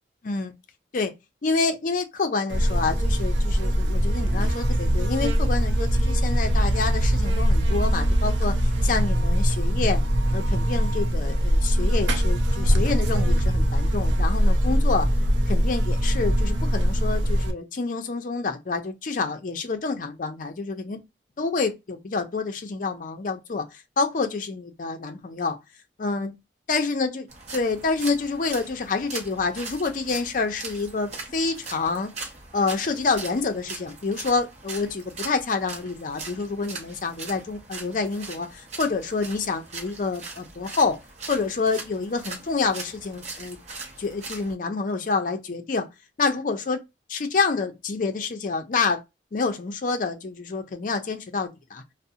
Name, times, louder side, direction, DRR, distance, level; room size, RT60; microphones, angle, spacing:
voice 1, 1.4-8.5 8.8-10.0 10.3-15.1 15.5-21.0 21.4-25.6 26.0-26.4 26.7-32.1 32.5-41.0 41.3-43.6 44.0-45.9 46.2-46.8 47.1-49.0 49.3-51.8, left 4 dB, 45° left, 0.4 m, -27 dB
Buzz, 2.5-17.5, equal, 90° right, 0.5 m, -22 dB
sound 1, 27.3-44.5, right 3 dB, 40° right, 0.7 m, -40 dB
2.5 x 2.0 x 2.6 m
head